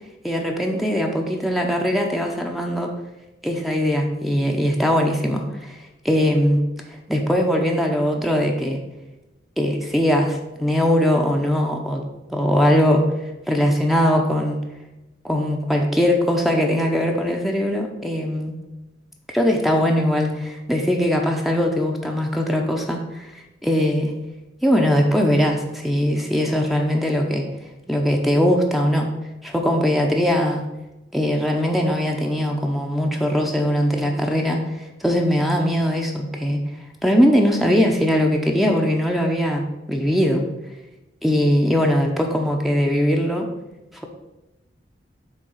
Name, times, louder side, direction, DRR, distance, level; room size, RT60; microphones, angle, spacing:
voice 1, 0.2-2.9 3.4-6.6 7.1-8.8 9.6-12.0 12.3-13.0 13.5-14.6 15.2-18.5 19.3-24.1 24.6-27.5 27.9-29.1 29.4-30.6 31.1-36.6 37.0-40.4 41.2-43.5 43.9-44.0, equal, ahead, 2 dB, 0.7 m, -20 dB
8.4 x 3.5 x 6.4 m, 1.0 s
head